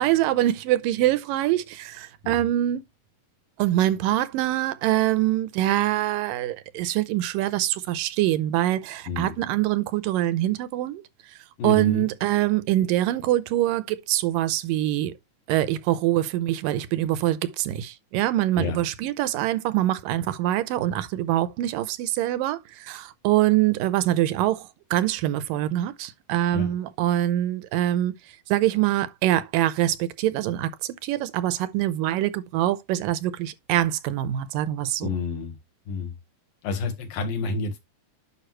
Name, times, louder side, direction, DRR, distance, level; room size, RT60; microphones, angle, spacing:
voice 1, 0.0-2.8 3.6-11.4 11.6-15.1 15.5-35.1, right 14 dB, 90° right, 2.4 m, -24 dB
voice 2, 11.6-12.0 18.5-18.8 26.5-26.7 35.0-35.6 35.9-36.1 36.6-37.8, left 3 dB, 85° left, 3.3 m, -29 dB
10.0 x 5.6 x 3.1 m
omnidirectional pair, 3.9 m